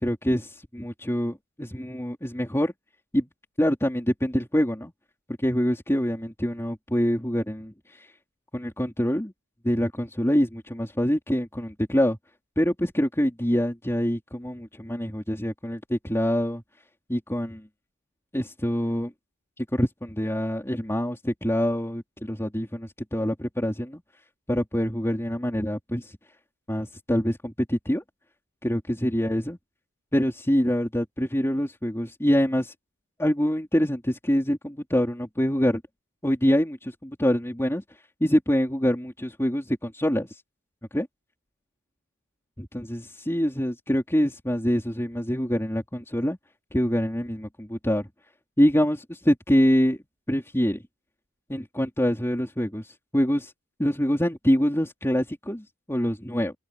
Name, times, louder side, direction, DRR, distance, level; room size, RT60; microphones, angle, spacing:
voice 1, 0.0-2.7 3.1-3.3 3.6-4.9 5.4-8.1 8.5-9.3 9.6-12.2 12.6-16.6 17.1-17.7 18.3-19.1 19.6-24.0 24.5-26.2 26.7-28.0 28.6-29.6 30.1-32.7 33.2-35.8 36.2-37.8 38.2-40.4 40.9-41.1 42.6-46.4 46.7-48.1 48.6-50.0 50.3-50.8 51.5-53.5 53.8-56.5, equal, 10° left, 3.8 m, -25 dB
open air
head